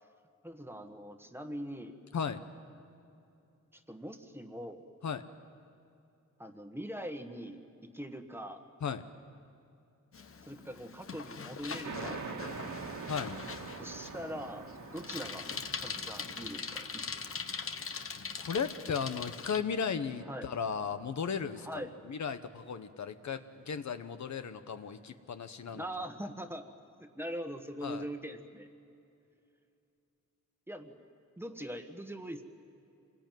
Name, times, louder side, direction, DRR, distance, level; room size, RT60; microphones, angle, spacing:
voice 1, 0.4-2.0 3.7-4.8 6.4-8.6 10.4-12.2 13.8-15.4 15.8-17.0 20.2-20.5 21.6-21.9 25.7-26.7 27.0-28.7 30.7-30.9 31.4-32.4, equal, 10° right, 6 dB, 1.4 m, -42 dB
Bicycle, 10.1-19.6, left 5 dB, 50° left, 1.1 m, -42 dB
sound 1, 11.8-19.0, right 4 dB, 85° right, 2.4 m, -45 dB
voice 2, 18.4-21.7 22.1-26.1 27.8-28.0, left 6 dB, 70° left, 9 dB, 1.1 m, -35 dB
27.5 x 20.5 x 9.2 m, 2.6 s
wide cardioid pair, 145°, 29 cm